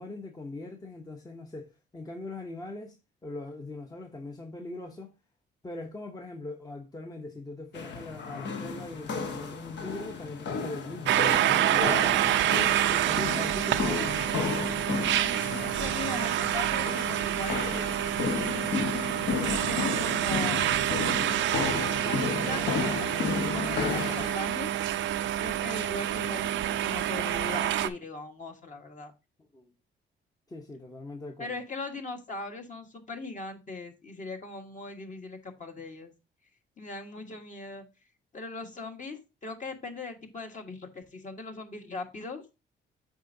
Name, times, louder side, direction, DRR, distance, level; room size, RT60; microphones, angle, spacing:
voice 1, 0.0-5.1 5.6-12.2 12.5-14.4 29.5-29.7 30.5-31.6, left 2 dB, 20° left, 0.9 m, -41 dB
sound 1, 7.7-24.4, left 5 dB, 65° left, 1.1 m, -33 dB
sound 2, 11.1-27.9, right 12 dB, 70° right, 0.5 m, -27 dB
voice 2, 15.6-18.7 19.4-20.9 22.0-23.1 23.5-24.7 25.4-29.1 31.4-36.1 36.8-37.8 38.3-42.5, left 3 dB, 40° left, 1.5 m, -40 dB
7.3 x 5.1 x 2.6 m
cardioid pair, 90°, 20 cm